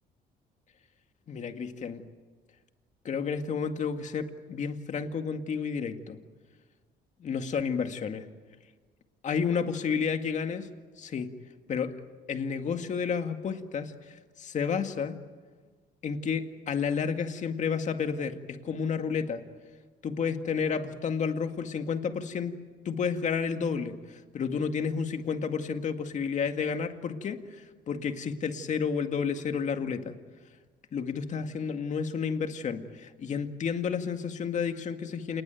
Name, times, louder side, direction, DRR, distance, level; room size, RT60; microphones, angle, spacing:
voice 1, 1.3-2.0 3.0-6.2 7.2-8.3 9.2-10.7 11.0-11.3 11.7-11.9 12.3-15.2 16.0-19.4 20.0-22.6 22.9-30.1 30.9-35.4, left 6 dB, 45° left, 7 dB, 2.0 m, -31 dB
28.0 x 20.0 x 9.1 m, 1.4 s
cardioid pair, 110°, 17 cm